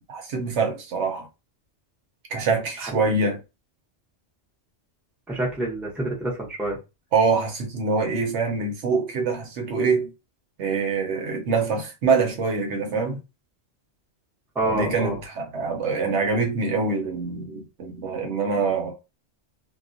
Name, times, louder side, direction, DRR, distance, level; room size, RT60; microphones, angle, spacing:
voice 1, 0.1-1.3 2.3-3.4 7.1-10.1 10.6-13.2 14.6-18.9, right 4 dB, 80° right, 1.0 m, -24 dB
voice 2, 5.3-6.8 14.5-15.2, right 1 dB, ahead, 0.6 m, -27 dB
2.3 x 2.2 x 2.5 m
omnidirectional pair, 1.2 m